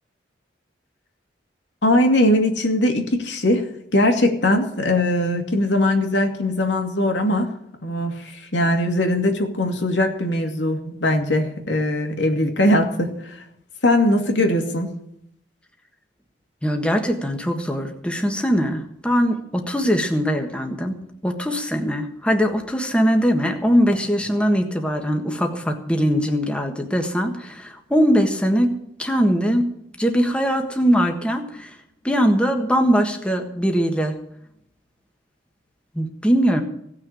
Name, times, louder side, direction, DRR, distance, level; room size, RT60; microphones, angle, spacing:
voice 1, 1.8-3.7 3.9-7.5 7.8-13.4 13.8-14.9, left 1 dB, 85° left, 3 dB, 2.5 m, -20 dB
voice 2, 16.6-28.7 29.0-29.7 30.0-31.8 32.0-34.2 35.9-36.6, equal, 5° left, 3 dB, 1.5 m, -21 dB
17.0 x 6.6 x 9.0 m, 0.75 s
head